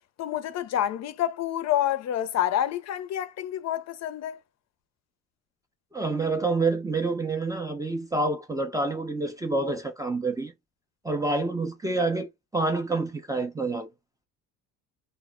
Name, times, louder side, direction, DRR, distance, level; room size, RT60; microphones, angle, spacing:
voice 1, 0.2-4.4, left 11 dB, 50° left, 0.5 m, -28 dB
voice 2, 5.9-10.5 11.0-13.9, right 3 dB, 10° right, 0.4 m, -27 dB
2.1 x 2.0 x 3.5 m
cardioid pair, 105°, 34 cm